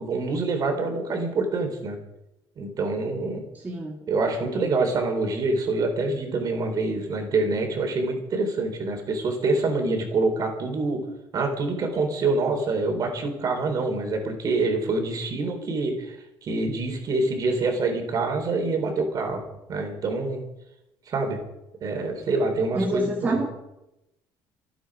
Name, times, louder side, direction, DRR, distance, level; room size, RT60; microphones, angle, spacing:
voice 1, 0.0-2.0 2.6-3.4 4.1-11.0 11.3-19.4 19.7-20.4 21.1-21.4 21.8-23.4, right 3 dB, 40° right, 4 dB, 4.2 m, -26 dB
voice 2, 3.6-4.0 22.7-23.5, right 1 dB, 20° right, -2 dB, 2.4 m, -26 dB
26.5 x 9.4 x 5.1 m, 0.89 s
cardioid pair, 145°, 9 cm